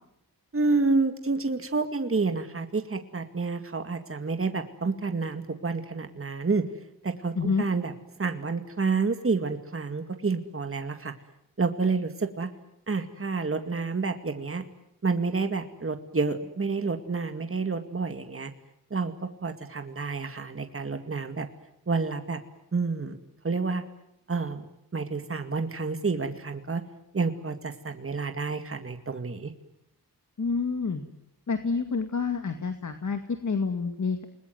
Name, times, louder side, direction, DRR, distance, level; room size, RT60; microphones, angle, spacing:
voice 1, 0.5-6.7 7.0-7.9 8.2-11.1 11.6-12.5 12.9-14.7 15.0-18.5 18.9-21.5 21.9-22.4 22.7-23.2 23.4-23.8 24.3-26.8 27.1-29.5, right 4 dB, 35° right, 7 dB, 2.2 m, -29 dB
voice 2, 30.4-31.0 31.5-34.2, left 4 dB, 50° left, 7 dB, 2.2 m, -28 dB
29.0 x 21.0 x 9.4 m, 0.80 s
wide cardioid pair, 80°, 39 cm